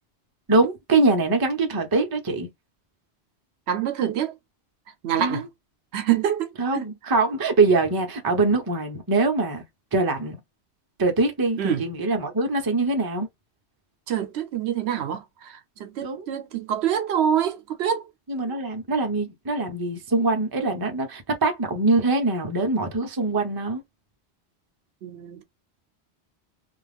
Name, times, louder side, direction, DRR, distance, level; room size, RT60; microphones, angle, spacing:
voice 1, 0.5-2.5 5.2-5.5 6.6-9.6 9.9-10.4 11.0-13.3 16.0-16.3 18.3-23.8, right 3 dB, 25° right, 0.5 m, -23 dB
voice 2, 3.7-4.3 5.0-5.5 5.9-6.9 11.6-11.9 14.1-18.1 25.0-25.4, right 9 dB, 75° right, 0.8 m, -26 dB
2.4 x 2.4 x 3.3 m
omnidirectional pair, 1.1 m